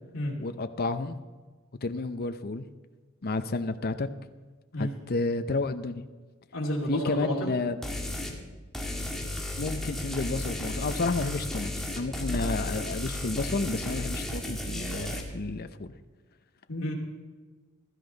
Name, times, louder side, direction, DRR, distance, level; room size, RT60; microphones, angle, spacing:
voice 1, 0.4-1.2 1.8-2.7 3.2-4.1 4.8-6.0 6.9-7.8 9.6-15.9, left 3 dB, 50° left, 10 dB, 0.7 m, -31 dB
voice 2, 6.5-7.5 16.7-16.9, left 1 dB, 75° left, -3 dB, 2.5 m, -31 dB
sound 1, 7.8-8.4 8.7-15.2, left 1 dB, ahead, 1.8 m, -33 dB
16.0 x 12.5 x 3.9 m, 1.4 s
head